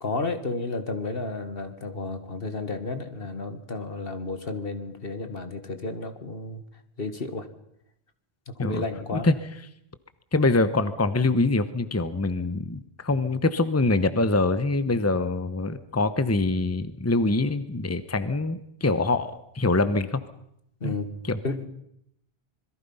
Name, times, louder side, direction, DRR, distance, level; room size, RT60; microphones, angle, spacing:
voice 1, 0.0-6.6 7.0-7.5 8.5-9.3 20.8-21.1 21.4-21.7, left 3 dB, 65° left, 9 dB, 2.1 m, -32 dB
voice 2, 10.3-20.2 20.8-20.9 21.2-21.4, left 2 dB, 15° left, 12 dB, 1.0 m, -24 dB
26.5 x 22.0 x 5.7 m, 0.77 s
omnidirectional pair, 1.1 m